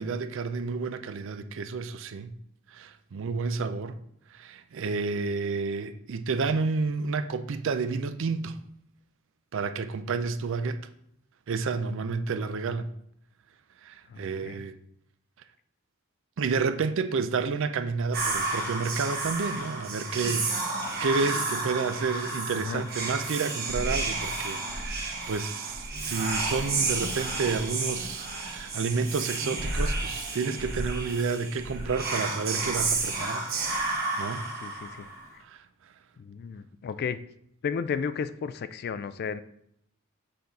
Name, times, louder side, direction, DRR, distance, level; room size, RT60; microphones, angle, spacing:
voice 1, 0.0-2.4 2.7-4.0 4.3-8.6 9.5-10.9 11.5-12.9 13.8-14.7 16.4-33.5 33.8-34.5 35.4-35.6, right 4 dB, 65° right, 0.4 m, -30 dB
voice 2, 14.1-14.6 21.3-21.4 22.6-22.8 34.6-35.1 35.3-35.4 36.2-37.2 37.6-39.4, left 6 dB, 50° left, 0.3 m, -33 dB
Whispering, 18.1-35.3, right 3 dB, 45° right, 1.2 m, -31 dB
6.7 x 3.9 x 4.1 m
head